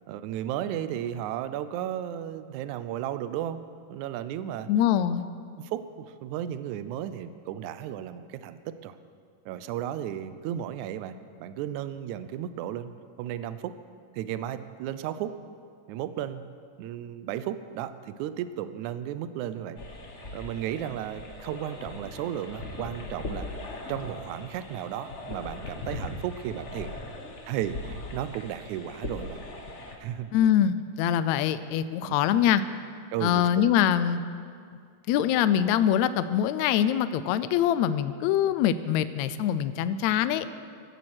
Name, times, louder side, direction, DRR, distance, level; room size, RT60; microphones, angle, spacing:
voice 1, 0.1-3.6 3.9-4.7 5.6-9.0 9.5-12.9 13.2-13.8 14.1-15.4 15.9-16.4 16.8-19.8 20.3-23.5 23.9-26.9 27.4-29.4 30.0-30.3 32.1-32.2 33.1-33.6, right 11 dB, 75° right, 12 dB, 1.9 m, -34 dB
voice 2, 4.7-5.2 30.3-32.6 33.2-34.2 35.1-40.4, left 10 dB, 80° left, 13 dB, 1.7 m, -24 dB
sound 1, 19.8-30.0, left 2 dB, 60° left, 0.7 m, -39 dB
16.0 x 13.5 x 6.2 m, 2.2 s
omnidirectional pair, 3.7 m